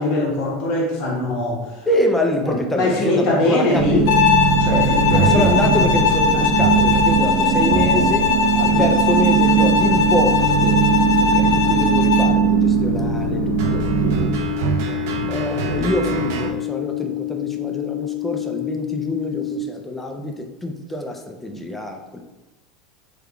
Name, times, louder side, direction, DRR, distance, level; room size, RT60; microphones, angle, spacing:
voice 1, 0.0-1.6 2.7-4.1 4.6-5.9 6.3-6.4 8.7-8.9 14.0-14.3, left 2 dB, 50° left, -2 dB, 1.0 m, -22 dB
voice 2, 1.9-4.1 5.1-8.3 8.6-10.8 11.3-13.8 14.2-14.3 15.3-22.2, left 1 dB, 10° left, 3 dB, 0.4 m, -25 dB
sound 1, 3.8-16.5, right 7 dB, 75° right, 0.5 m, -20 dB
Bowed string instrument, 4.1-12.4, left 5 dB, 80° left, 0.5 m, -20 dB
sound 2, 9.5-19.5, left 17 dB, 20° right, 1.0 m, -28 dB
3.4 x 2.2 x 3.5 m, 1.1 s
supercardioid pair, 140°, 2 cm